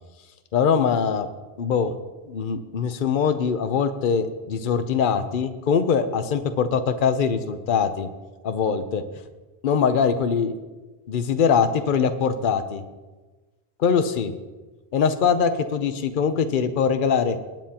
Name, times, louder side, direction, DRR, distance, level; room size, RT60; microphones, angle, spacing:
voice 1, 0.5-1.3 1.6-2.0 2.2-8.1 8.4-9.0 9.6-10.5 11.1-12.8 13.8-14.3 14.9-17.4, left 6 dB, 55° left, 9 dB, 0.9 m, -22 dB
22.0 x 9.1 x 2.9 m, 1.2 s
omnidirectional pair, 1.0 m